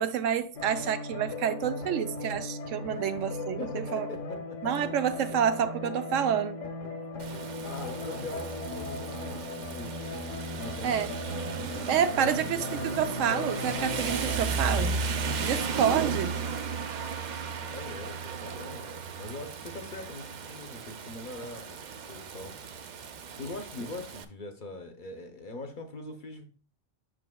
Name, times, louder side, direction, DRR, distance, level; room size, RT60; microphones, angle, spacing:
voice 1, 0.0-4.1 4.6-6.6 10.8-11.1 11.9-12.6 13.0-15.0 15.4-16.4, right 8 dB, 80° right, 1.0 m, -28 dB
sound 1, 0.5-14.5, left 2 dB, 80° left, 1.3 m, -37 dB
voice 2, 3.6-4.6 7.0-7.1 7.6-10.0 10.5-11.1 12.2-12.6 17.7-22.5 23.4-26.4, left 2 dB, 50° left, 0.7 m, -41 dB
Rain, 7.2-24.2, right 5 dB, 60° right, 0.4 m, -35 dB
7.6 x 5.6 x 2.2 m
omnidirectional pair, 1.3 m